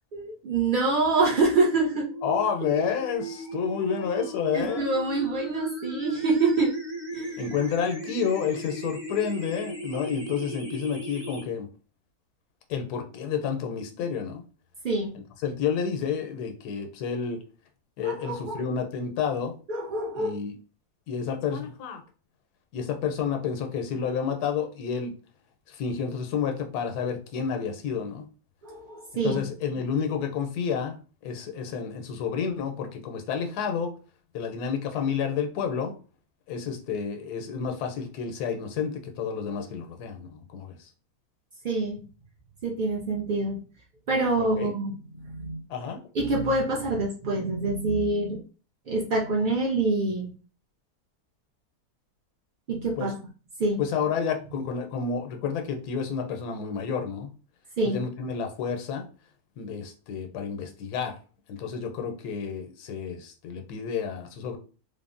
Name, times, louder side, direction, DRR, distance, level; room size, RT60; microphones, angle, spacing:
voice 1, 0.1-2.1 4.5-6.7 7.1-7.3 14.8-15.1 18.0-18.6 19.7-20.4 28.6-29.4 41.6-42.0 42.6-43.6 44.1-45.0 45.3-45.6 46.1-48.4 48.9-50.3 52.7-53.1 53.6-53.8 57.8-58.0, right 2 dB, 85° right, -3 dB, 0.4 m, -26 dB
sound 1, 1.4-11.4, right 1 dB, 60° right, 1.6 m, -37 dB
voice 2, 2.2-4.9 7.4-11.7 12.7-14.4 15.4-17.4 18.0-19.6 20.2-20.6 21.1-22.0 22.7-25.1 25.7-28.2 29.1-31.0 31.2-33.9 34.3-35.9 36.5-40.9 44.4-44.7 45.7-46.0 53.0-53.1 53.8-57.3 57.8-59.1 59.6-61.2 61.5-64.6, left 6 dB, 90° left, 5 dB, 1.1 m, -30 dB
3.4 x 2.0 x 2.4 m, 0.37 s
omnidirectional pair, 1.6 m